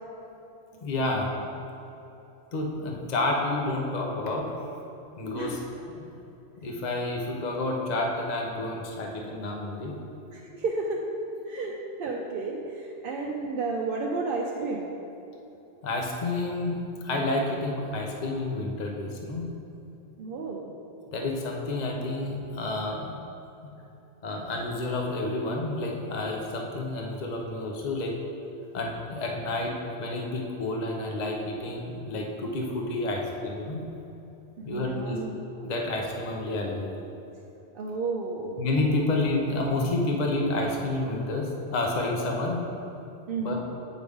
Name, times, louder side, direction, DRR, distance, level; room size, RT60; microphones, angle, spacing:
voice 1, 0.8-1.3 2.5-4.5 5.2-5.6 5.9-6.1 6.6-10.0 15.8-19.5 21.1-23.2 23.6-23.7 24.2-28.1 28.7-29.7 30.0-33.8 34.6-35.2 35.6-36.9 38.6-42.6 43.4-43.5, left 2 dB, 40° left, 0 dB, 0.8 m, -29 dB
voice 2, 10.3-11.1 11.5-14.9 20.2-20.7 34.6-35.3 35.6-35.7 37.7-38.5 43.3-43.5, right 3 dB, 60° right, -1 dB, 0.7 m, -32 dB
8.3 x 5.0 x 3.5 m, 3.0 s
omnidirectional pair, 1.2 m